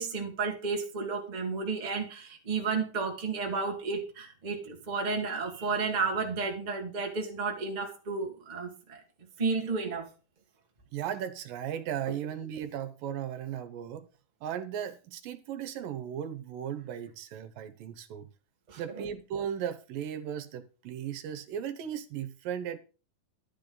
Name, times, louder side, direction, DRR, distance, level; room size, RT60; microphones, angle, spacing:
voice 1, 0.0-9.0 9.4-10.1 18.7-19.0, right 4 dB, 20° right, 1.4 m, -32 dB
voice 2, 10.9-14.1 14.4-18.3 18.8-22.8, right 9 dB, 80° right, 2.7 m, -36 dB
12.5 x 9.7 x 3.9 m
omnidirectional pair, 4.0 m